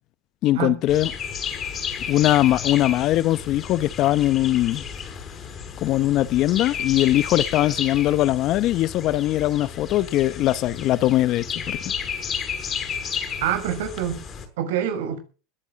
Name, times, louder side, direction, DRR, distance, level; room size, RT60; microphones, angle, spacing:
voice 1, 0.4-1.1 2.1-4.8 5.8-11.9, left 14 dB, 45° left, 1.0 m, -21 dB
sound 1, 0.9-14.5, left 7 dB, 30° left, 6.3 m, -32 dB
voice 2, 13.4-14.2 14.6-15.2, right 9 dB, 75° right, 6.4 m, -26 dB
20.5 x 10.0 x 6.5 m
supercardioid pair, 120°, 0 cm